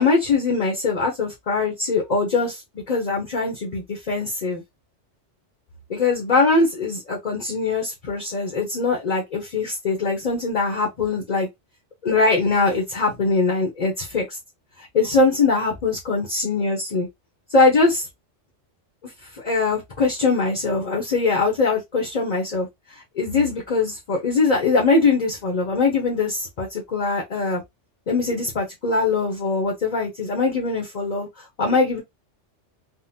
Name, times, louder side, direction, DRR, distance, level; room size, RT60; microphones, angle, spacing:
voice 1, 0.0-2.6 2.9-4.6 5.9-11.5 12.0-14.4 14.9-17.1 17.5-18.1 19.3-22.7 23.2-27.6 28.1-31.3 31.6-32.0, left 3 dB, 40° left, 0.8 m, -22 dB
3.6 x 2.0 x 2.7 m
omnidirectional pair, 1.2 m